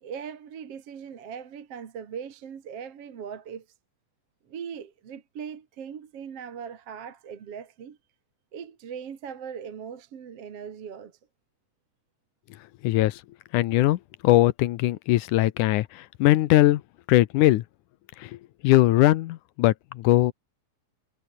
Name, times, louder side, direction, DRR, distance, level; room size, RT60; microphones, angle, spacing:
voice 1, 0.0-3.7 4.5-8.0 8.5-11.2, right 7 dB, 50° right, 2.7 m, -39 dB
voice 2, 12.8-13.2 13.5-16.8 17.1-17.6 18.2-18.3 18.6-20.3, left 16 dB, 75° left, 2.2 m, -20 dB
omnidirectional pair, 3.8 m